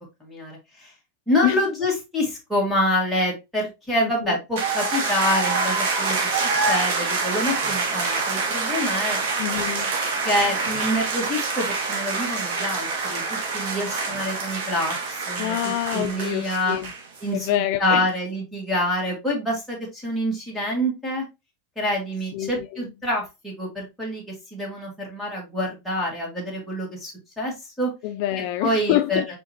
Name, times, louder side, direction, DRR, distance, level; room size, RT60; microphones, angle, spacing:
voice 1, 0.2-0.9 1.3-9.2 10.2-13.2 13.5-15.6 15.9-16.8 17.2-21.2 21.7-27.9 28.6-29.2, left 1 dB, ahead, 1.8 m, -26 dB
voice 2, 4.0-4.4 9.4-9.9 15.4-16.9 17.3-18.1 22.3-22.9 28.0-29.3, left 14 dB, 45° left, 0.3 m, -26 dB
sound 1, 4.6-17.2, right 4 dB, 65° right, 1.6 m, -26 dB
5.0 x 3.8 x 2.8 m
supercardioid pair, 160°, 0 cm